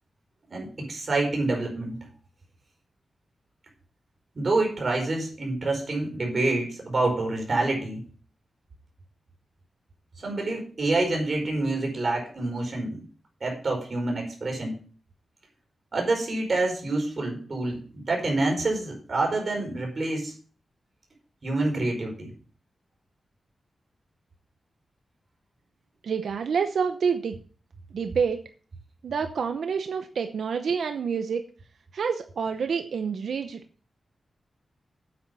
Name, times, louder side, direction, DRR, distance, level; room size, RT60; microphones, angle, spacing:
voice 1, 0.5-2.1 4.3-8.0 10.2-13.0 13.4-14.7 15.9-20.3 21.4-22.3, right 2 dB, 40° right, 1 dB, 4.7 m, -27 dB
voice 2, 26.0-27.4 27.9-28.4 29.0-31.4 31.9-33.6, right 6 dB, 85° right, 7 dB, 0.8 m, -27 dB
8.9 x 8.7 x 5.6 m, 0.40 s
wide cardioid pair, 155°, 0 cm